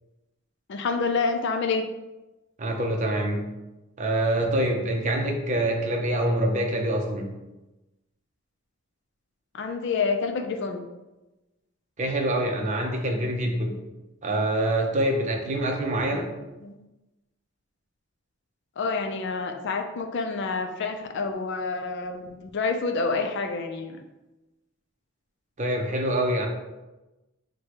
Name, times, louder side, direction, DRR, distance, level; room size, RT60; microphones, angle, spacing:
voice 1, 0.7-1.9 9.5-10.8 16.1-16.2 16.6-16.7 18.8-24.0, left 4 dB, 60° left, 6 dB, 0.4 m, -28 dB
voice 2, 2.6-3.5 4.0-7.3 12.0-13.8 14.2-16.3 25.6-26.5, right 1 dB, 35° right, 2 dB, 0.6 m, -25 dB
6.3 x 2.2 x 2.9 m, 1.0 s
head